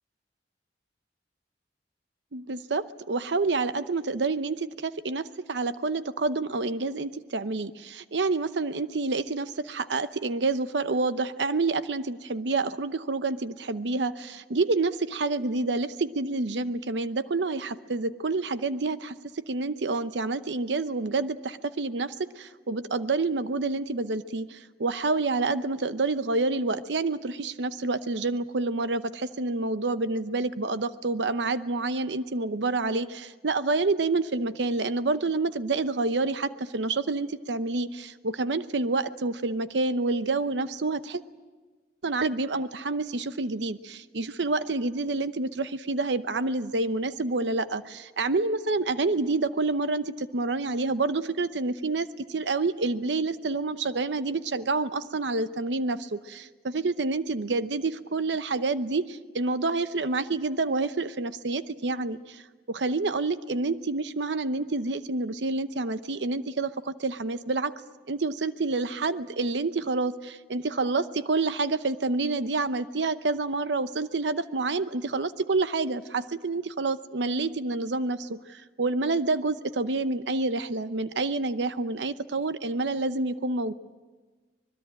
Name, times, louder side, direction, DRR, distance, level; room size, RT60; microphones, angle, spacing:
voice 1, 2.3-41.2 42.0-62.4 62.7-67.7 68.1-83.7, right 3 dB, 85° right, 12 dB, 0.8 m, -28 dB
25.0 x 21.0 x 8.9 m, 1.3 s
head